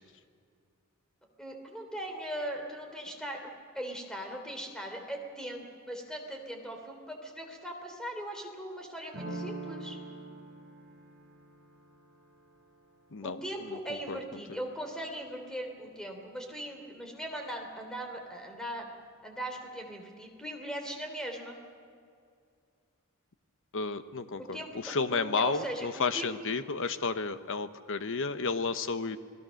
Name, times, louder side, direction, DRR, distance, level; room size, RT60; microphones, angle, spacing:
voice 1, 1.4-3.4 3.7-10.0 13.2-18.9 19.2-21.6 24.4-26.5, right 1 dB, 5° left, 3 dB, 3.3 m, -39 dB
sound 1, 9.1-14.7, right 2 dB, 55° right, 6.9 m, -45 dB
voice 2, 23.7-29.2, left 4 dB, 60° left, 11 dB, 1.0 m, -32 dB
28.5 x 19.5 x 6.5 m, 2.3 s
head